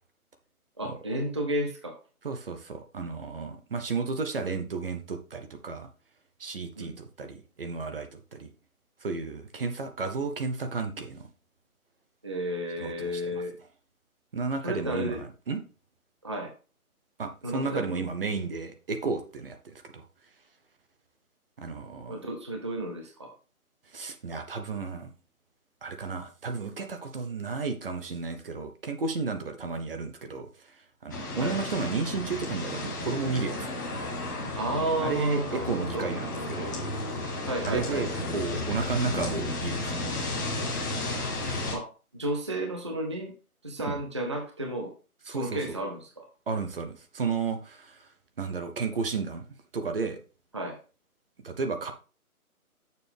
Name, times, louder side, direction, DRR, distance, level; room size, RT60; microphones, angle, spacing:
voice 1, 0.8-2.0 6.7-7.0 12.2-13.5 14.6-15.2 16.2-16.5 17.4-18.0 22.1-23.3 31.4-31.6 34.5-36.1 37.5-38.2 41.7-43.3 43.6-44.9 45.2-46.3 50.5-50.8, right 1 dB, 20° right, 0.5 m, -32 dB
voice 2, 2.2-5.9 6.4-8.5 9.0-11.3 12.8-13.4 14.3-15.6 17.2-20.0 21.6-22.2 23.9-25.1 25.8-33.7 35.0-36.8 37.6-40.0 43.8-44.0 45.3-45.6 46.5-48.1 48.4-49.5 49.7-50.2 51.4-51.9, right 4 dB, 40° right, 0.9 m, -33 dB
sound 1, 31.1-41.7, left 2 dB, 15° left, 0.8 m, -33 dB
6.8 x 6.4 x 3.4 m
figure-of-eight pair, 150°, 44 cm